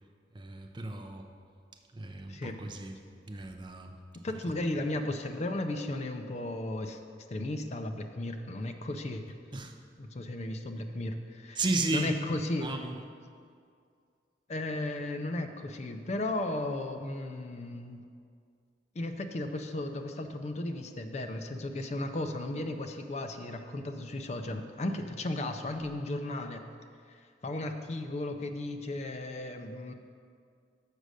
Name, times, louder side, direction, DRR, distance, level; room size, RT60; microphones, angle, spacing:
voice 1, 0.3-1.3 1.9-3.0 3.3-4.0 9.5-9.8 11.6-12.1 12.6-13.0, right 2 dB, 25° right, 5 dB, 0.5 m, -34 dB
voice 2, 4.2-7.0 7.3-9.4 10.0-11.6 11.9-12.7 14.5-18.0 19.0-26.6 27.1-27.2 27.4-29.9, left 1 dB, 40° left, 7 dB, 0.5 m, -35 dB
6.7 x 6.2 x 6.4 m, 2.2 s
head